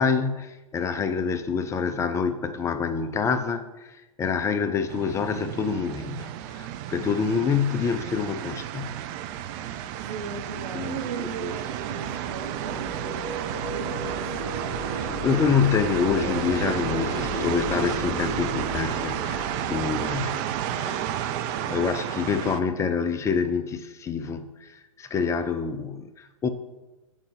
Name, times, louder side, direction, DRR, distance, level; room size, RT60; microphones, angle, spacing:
voice 1, 0.0-8.9 10.7-11.0 11.4-11.5 14.9-26.5, left 6 dB, 15° left, 10 dB, 0.5 m, -27 dB
sound 1, 4.9-22.6, right 11 dB, 35° right, 0.6 m, -32 dB
voice 2, 6.9-7.3 10.0-13.3 13.7-14.4, right 4 dB, 75° right, 7 dB, 1.2 m, -38 dB
sound 2, 10.5-21.1, equal, 5° right, 2.7 m, -35 dB
7.9 x 5.1 x 5.8 m, 1.1 s
hypercardioid pair, 115°, 18 cm